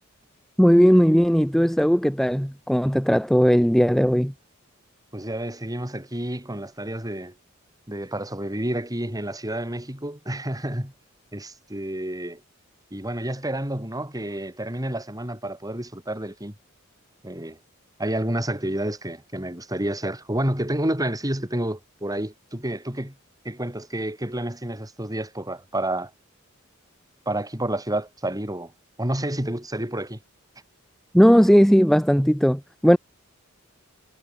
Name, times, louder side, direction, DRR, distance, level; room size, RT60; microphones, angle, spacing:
voice 1, 0.6-4.3 31.1-33.0, equal, ahead, 1.7 m, -17 dB
voice 2, 5.1-7.3 7.9-10.9 11.3-12.4 12.9-16.5 17.2-17.6 18.0-23.1 23.5-26.1 27.3-28.7 29.0-30.2, right 1 dB, 20° right, 5.2 m, -29 dB
head